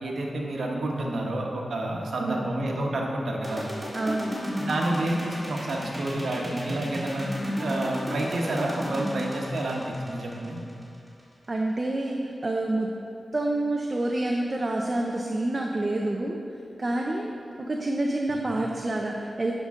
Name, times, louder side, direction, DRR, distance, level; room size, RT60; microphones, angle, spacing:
voice 1, 0.0-3.7 4.6-7.3 7.6-10.6, right 1 dB, 80° right, -1 dB, 1.1 m, -29 dB
voice 2, 2.2-2.5 3.9-4.4 11.5-12.9 13.3-16.4 16.8-17.3 17.7-19.5, right 2 dB, 35° right, 0 dB, 0.5 m, -27 dB
sound 1, 3.4-11.2, equal, 5° right, 1.7 m, -34 dB
10.5 x 5.2 x 3.7 m, 2.5 s
wide cardioid pair, 90°, 0 cm